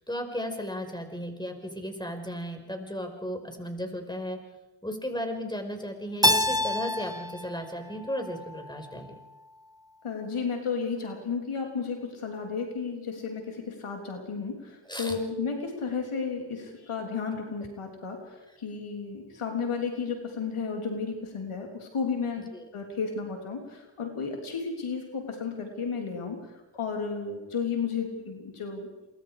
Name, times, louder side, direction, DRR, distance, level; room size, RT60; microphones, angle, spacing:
voice 1, 0.1-4.4 4.8-9.2 14.9-15.2 22.5-22.6, equal, 10° left, 5 dB, 5.4 m, -35 dB
Keyboard (musical), 6.2-9.0, left 1 dB, 5° right, 1.6 m, -28 dB
voice 2, 10.0-18.2 18.6-26.4 26.7-28.9, left 5 dB, 85° left, 2 dB, 3.6 m, -33 dB
27.5 x 24.0 x 5.0 m, 1.0 s
cardioid pair, 40°, 49 cm